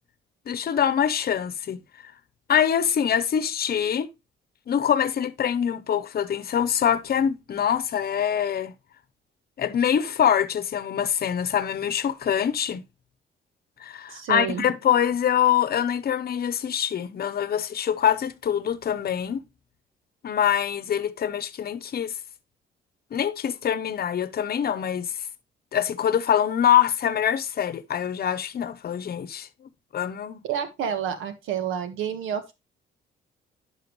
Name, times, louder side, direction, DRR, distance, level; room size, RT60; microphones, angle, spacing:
voice 1, 0.5-2.1 2.5-4.1 4.7-8.7 9.6-12.8 13.8-19.4 20.2-22.2 23.1-25.1 25.7-29.5 29.9-30.4, left 9 dB, 50° left, 0.9 m, -24 dB
voice 2, 14.1-14.6 30.4-32.6, right 8 dB, 85° right, 1.4 m, -29 dB
10.5 x 5.7 x 3.1 m
cardioid pair, 90°, 20 cm